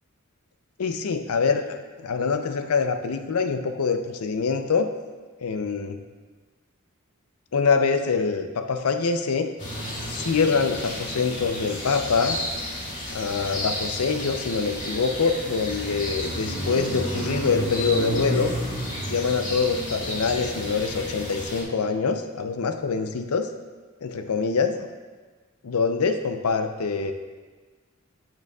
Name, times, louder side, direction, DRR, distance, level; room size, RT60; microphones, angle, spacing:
voice 1, 0.8-4.9 5.4-6.0 7.5-9.5 10.1-12.4 13.1-18.5 19.1-23.5 24.0-24.9 25.6-27.1, left 5 dB, 90° left, 7 dB, 0.6 m, -25 dB
sound 1, 9.6-21.6, equal, 35° left, 2.0 m, -31 dB
9.2 x 7.8 x 2.3 m, 1.4 s
head